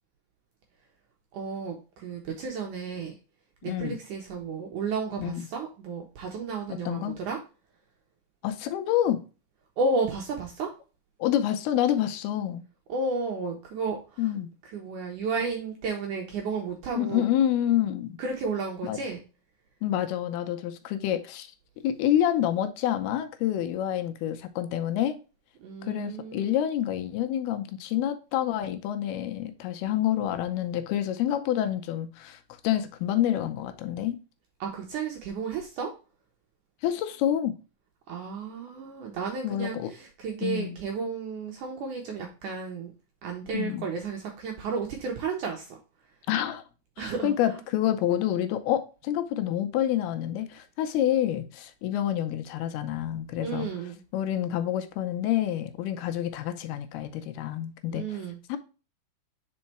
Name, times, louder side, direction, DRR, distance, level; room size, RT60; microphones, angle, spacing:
voice 1, 1.3-3.1 3.6-7.4 9.8-10.7 12.9-14.3 14.7-17.3 18.2-19.2 25.6-26.5 34.6-35.9 38.1-42.9 43.2-45.8 47.0-47.3 53.4-54.0 57.9-58.4, right 4 dB, 70° right, 2.0 m, -32 dB
voice 2, 3.7-4.0 5.2-5.5 6.7-7.2 8.4-9.2 11.2-12.6 14.2-14.5 17.0-18.2 18.8-19.0 19.8-21.5 21.8-25.2 25.8-34.2 36.8-37.6 39.4-39.9 40.4-40.8 43.5-43.8 46.3-46.6 47.0-53.7 54.1-58.2 58.5-58.6, left 11 dB, 85° left, 2.6 m, -28 dB
5.3 x 4.7 x 4.3 m
omnidirectional pair, 4.6 m